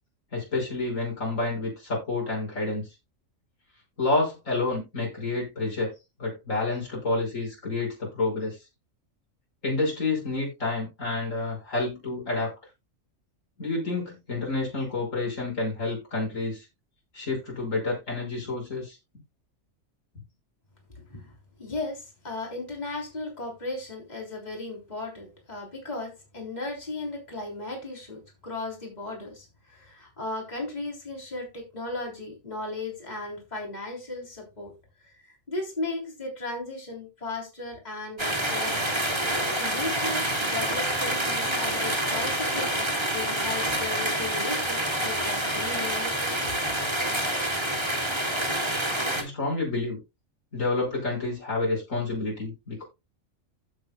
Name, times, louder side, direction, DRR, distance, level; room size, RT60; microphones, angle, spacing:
voice 1, 0.3-2.9 4.0-5.9 6.2-8.6 9.6-12.5 13.6-16.7 17.1-19.0 49.1-50.0 50.5-52.8, left 3 dB, 75° left, 6.1 m, -29 dB
voice 2, 21.1-34.7 35.0-38.9 39.6-46.3, left 2 dB, 30° left, 3.7 m, -36 dB
sound 1, 38.2-49.2, right 1 dB, 20° right, 2.9 m, -27 dB
15.5 x 7.3 x 2.3 m
omnidirectional pair, 1.4 m